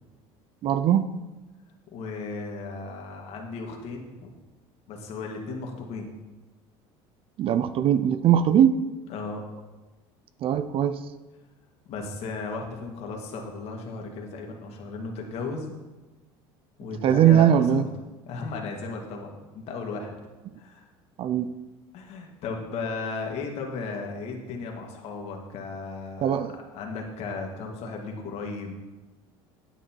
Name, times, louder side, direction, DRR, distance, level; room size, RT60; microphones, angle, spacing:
voice 1, 0.6-1.1 7.4-8.8 10.4-11.0 17.0-17.8 21.2-21.5 26.2-26.5, right 9 dB, 45° right, 13 dB, 0.5 m, -20 dB
voice 2, 1.9-4.3 4.9-6.1 9.1-9.4 11.9-15.7 16.8-17.8 18.3-20.1 20.5-20.8 21.9-26.3 26.7-28.8, left 4 dB, 55° left, 1 dB, 2.2 m, -35 dB
9.4 x 9.0 x 4.5 m, 1.2 s
supercardioid pair, 110°, 12 cm